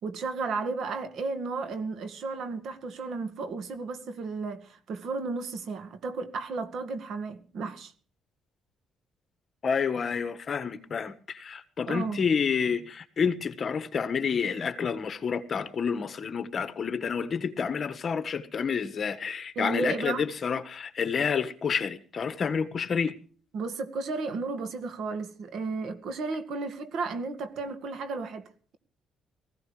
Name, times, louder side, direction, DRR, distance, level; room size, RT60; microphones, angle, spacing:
voice 1, 0.0-7.9 11.9-12.3 19.6-20.3 23.5-28.5, right 4 dB, 65° right, 2.1 m, -33 dB
voice 2, 9.6-23.1, left 6 dB, 40° left, 1.5 m, -29 dB
20.0 x 15.5 x 3.3 m
cardioid pair, 130°, 0 cm